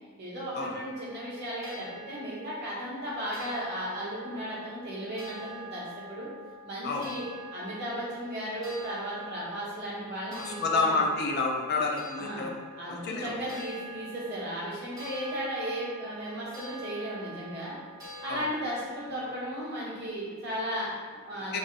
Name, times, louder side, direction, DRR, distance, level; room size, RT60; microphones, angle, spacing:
voice 1, 0.2-5.8 6.1-6.3 6.6-7.2 7.5-11.0 12.2-12.5 12.7-17.8 18.2-21.6, equal, 50° right, -7 dB, 1.2 m, -35 dB
sound 1, 0.8-20.2, right 1 dB, 15° right, 1.0 m, -46 dB
voice 2, 10.3-12.6 12.9-13.4 18.3-18.4 21.5-21.6, left 3 dB, 45° left, 0 dB, 0.4 m, -29 dB
3.2 x 2.6 x 3.9 m, 1.5 s
head